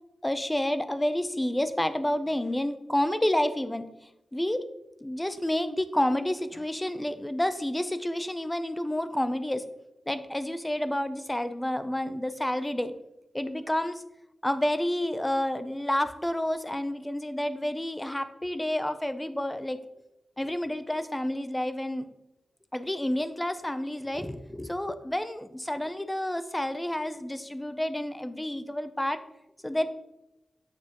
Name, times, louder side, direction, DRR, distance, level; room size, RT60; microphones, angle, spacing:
voice 1, 0.2-3.9 4.3-4.6 5.0-9.7 10.1-12.9 13.3-14.0 14.4-19.8 20.4-22.0 22.7-29.2 29.6-29.9, left 1 dB, 10° left, 10 dB, 0.6 m, -29 dB
8.4 x 6.6 x 3.0 m, 0.90 s
wide cardioid pair, 105°, 0 cm